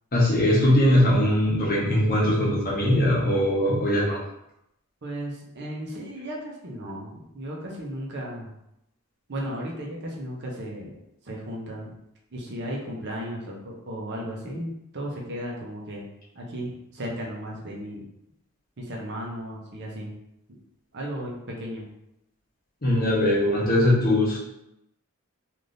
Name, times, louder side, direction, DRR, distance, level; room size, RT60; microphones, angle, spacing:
voice 1, 0.1-4.2 22.8-24.4, left 1 dB, 40° left, -4 dB, 0.9 m, -21 dB
voice 2, 5.0-8.5 9.3-11.0 11.2-11.9 12.3-16.1 16.3-18.0 18.8-20.2 20.9-21.9, equal, 50° right, -2 dB, 0.7 m, -35 dB
3.3 x 2.6 x 2.6 m, 0.82 s
head